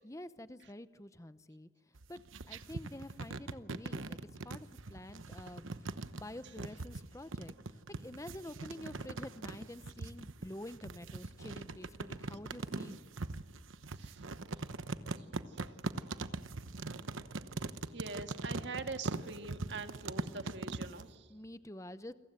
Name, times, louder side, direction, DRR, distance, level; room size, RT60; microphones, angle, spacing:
voice 1, 0.0-7.5 7.9-13.0 21.3-22.1, left 1 dB, 15° left, 13 dB, 0.8 m, -48 dB
sound 1, 2.0-21.1, right 3 dB, 80° right, 1.0 m, -41 dB
voice 2, 15.2-15.6 17.9-21.3, right 4 dB, 60° right, 7 dB, 1.8 m, -44 dB
29.0 x 22.5 x 8.1 m, 1.5 s
head